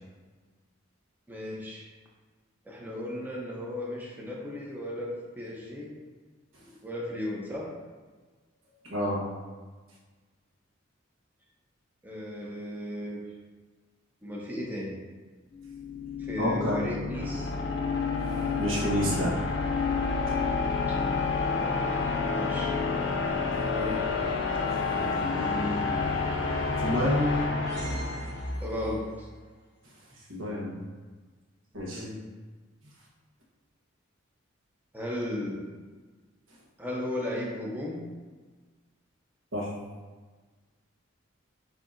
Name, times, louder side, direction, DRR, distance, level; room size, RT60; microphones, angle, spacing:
voice 1, 1.3-1.9 2.7-5.9 6.8-7.7 12.0-13.2 14.2-15.0 16.2-17.5 20.9-21.0 21.6-21.9 22.3-22.8 23.7-24.0 28.6-29.3 31.9-32.2 34.9-35.7 36.8-38.0, left 1 dB, 10° right, -3 dB, 0.7 m, -35 dB
voice 2, 8.9-9.2 16.4-16.8 18.3-19.3 20.3-20.4 23.9-24.0 24.5-25.9 26.8-27.4 30.3-30.8 31.7-32.0 39.5-39.7, equal, 80° right, -4 dB, 1.1 m, -30 dB
sound 1, 15.6-28.7, left 4 dB, 60° left, 0.6 m, -29 dB
sound 2, 26.9-29.1, equal, 55° right, 1.3 m, -38 dB
6.5 x 2.8 x 2.5 m, 1.4 s
head